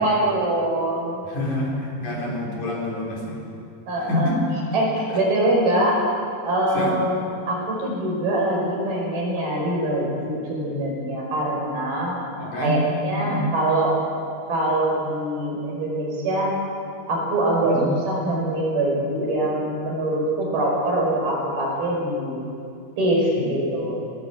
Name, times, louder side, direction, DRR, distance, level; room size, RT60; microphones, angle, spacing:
voice 1, 0.0-1.2 3.9-4.3 4.7-6.0 6.4-7.2 7.5-12.2 12.6-14.0 14.5-16.6 17.1-22.4 23.0-24.0, right 1 dB, 80° right, -2 dB, 7.3 m, -23 dB
voice 2, 1.3-3.4 4.1-4.4 5.1-5.2 6.7-7.0 12.4-12.8 13.2-13.5 17.6-17.9 23.4-23.5, left 1 dB, 50° left, -3 dB, 5.6 m, -27 dB
20.5 x 19.5 x 8.4 m, 2.5 s
omnidirectional pair, 4.3 m